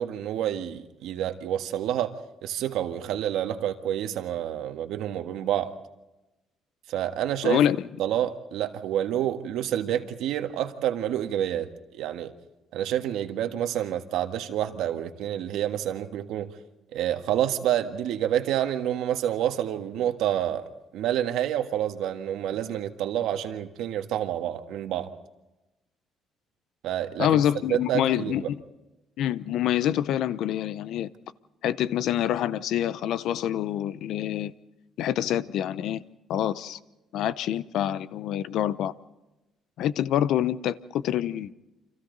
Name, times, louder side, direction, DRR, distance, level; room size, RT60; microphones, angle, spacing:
voice 1, 0.0-2.1 2.4-5.7 6.9-7.6 8.0-12.3 12.7-16.5 16.9-20.6 20.9-25.1 26.8-27.4 27.7-28.5, right 11 dB, 85° right, 7 dB, 1.6 m, -28 dB
voice 2, 7.4-7.9 27.2-28.6 29.2-31.1 31.6-34.5 35.0-36.0 36.3-36.8 37.1-38.9 39.8-41.5, left 11 dB, 70° left, 16 dB, 0.8 m, -26 dB
29.0 x 26.5 x 4.0 m, 1.0 s
cardioid pair, 135°, 0 cm